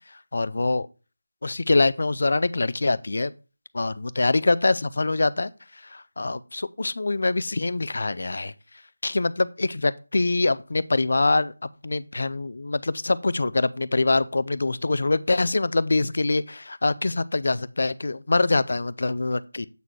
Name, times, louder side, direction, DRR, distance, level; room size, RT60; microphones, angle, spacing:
voice 1, 0.1-0.9 1.4-3.3 3.7-8.5 9.0-19.7, left 3 dB, 45° left, 0.4 m, -24 dB
8.0 x 4.1 x 4.7 m
figure-of-eight pair, 180°, 0 cm